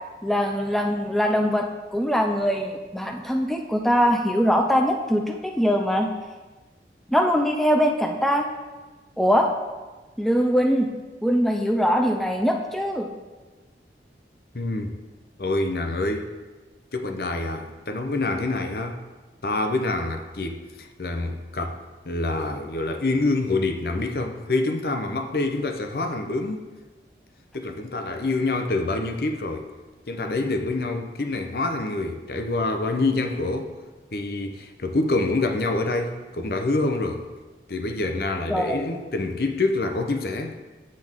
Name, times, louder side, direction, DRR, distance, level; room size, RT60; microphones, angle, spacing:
voice 1, 0.2-1.6 1.9-6.1 7.1-8.5 9.2-9.5 10.2-10.9 11.2-13.1 38.5-38.9, equal, ahead, 2 dB, 0.4 m, -22 dB
voice 2, 14.5-14.9 15.4-16.3 16.9-19.0 19.4-21.8 22.0-26.7 27.5-29.7 30.1-33.7 34.1-37.2 37.7-40.5, left 2 dB, 60° left, 6 dB, 0.7 m, -26 dB
7.7 x 7.6 x 3.6 m, 1.3 s
head